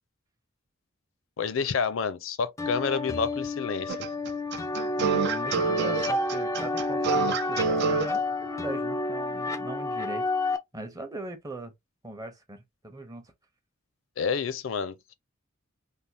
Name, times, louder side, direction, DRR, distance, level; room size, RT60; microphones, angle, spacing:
voice 1, 1.4-4.0 14.2-15.1, left 5 dB, 70° left, 0.5 m, -29 dB
sound 1, 2.6-10.6, left 2 dB, 15° left, 0.4 m, -30 dB
sound 2, 3.9-8.1, right 6 dB, 55° right, 0.4 m, -27 dB
voice 2, 5.0-10.3 10.7-11.7 12.0-13.3, right 1 dB, 20° right, 0.7 m, -39 dB
3.4 x 2.3 x 2.7 m
head